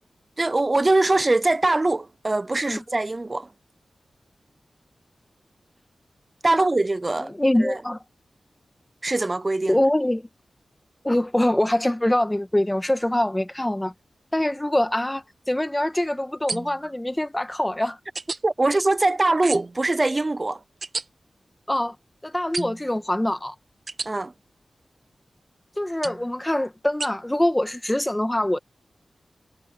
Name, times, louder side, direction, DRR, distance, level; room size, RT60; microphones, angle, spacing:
voice 1, 0.4-3.5 6.4-7.3 7.6-7.8 9.0-9.8 18.4-20.6 24.1-24.3, right 2 dB, 30° right, 0.3 m, -22 dB
voice 2, 7.3-8.0 9.7-10.3 11.0-13.9 14.3-18.0 21.7-21.9 22.2-23.5 25.8-28.6, left 1 dB, 15° left, 1.4 m, -24 dB
sound 1, 16.5-16.9 18.1-18.4 19.4-19.8 20.8-21.0 22.5-22.9 23.9-24.1 26.0-26.3 27.0-27.1, right 3 dB, 50° right, 1.3 m, -31 dB
wide cardioid pair, 80°, 0 cm